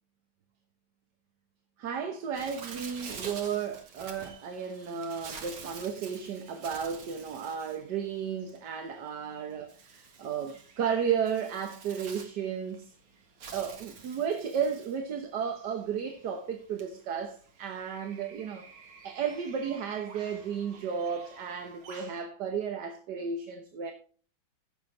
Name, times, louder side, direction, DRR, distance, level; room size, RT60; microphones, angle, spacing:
voice 1, 1.8-12.9 13.5-18.7 19.0-23.9, right 7 dB, 55° right, 1.5 m, -33 dB
Bird, 2.3-22.2, right 5 dB, 75° right, 2.7 m, -49 dB
15.0 x 7.1 x 3.8 m
omnidirectional pair, 2.3 m